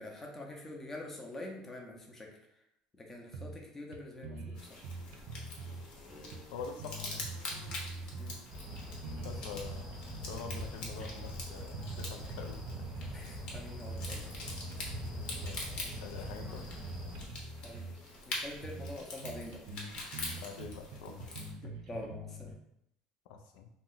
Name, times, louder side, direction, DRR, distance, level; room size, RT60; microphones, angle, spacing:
voice 1, 0.0-2.3 2.9-4.6 8.1-8.4 13.1-14.3 17.6-17.9 18.3-19.6 21.6-22.5, left 1 dB, 15° left, 0 dB, 0.5 m, -45 dB
sound 1, 3.3-3.7 3.9-5.9 6.3-8.4 8.7-10.6 11.0-11.2 11.6-13.2 13.5-14.2 14.5-15.5 15.9-18.0 18.3-18.4 18.6-19.0 19.2-22.5, right 3 dB, 75° right, 0.5 m, -44 dB
sound 2, 4.5-21.5, left 2 dB, 45° left, 0.8 m, -45 dB
voice 2, 6.5-7.2 9.2-9.9 10.3-12.9 15.4-16.7 20.4-21.7 23.3-23.7, left 5 dB, 80° left, 5 dB, 0.4 m, -45 dB
sound 3, 8.5-17.3, left 1 dB, 10° right, 0.9 m, -44 dB
2.8 x 2.1 x 3.8 m, 0.76 s
cardioid pair, 150°, 2 cm